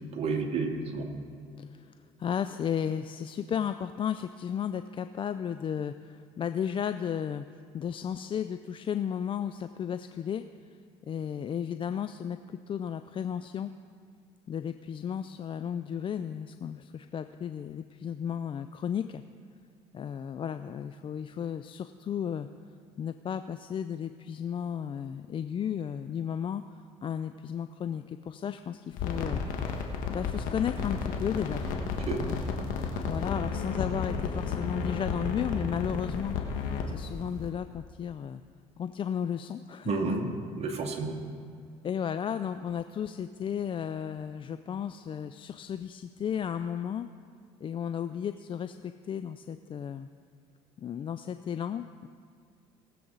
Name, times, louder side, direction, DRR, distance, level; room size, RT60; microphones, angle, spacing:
voice 1, 0.1-1.1 32.1-32.3 39.9-40.3 40.6-41.2, right 4 dB, 45° right, 3 dB, 2.0 m, -30 dB
voice 2, 1.6-1.9 2.2-7.4 7.7-10.4 11.1-13.7 14.5-19.2 19.9-22.5 23.0-29.4 30.1-31.6 33.1-38.4 38.8-40.1 41.8-47.1 47.6-50.1 50.8-52.1, left 8 dB, 35° left, 10 dB, 0.4 m, -34 dB
sound 1, 28.9-37.5, left 5 dB, 70° left, 1.5 m, -33 dB
19.0 x 7.7 x 3.9 m, 2.3 s
supercardioid pair, 75°, 14 cm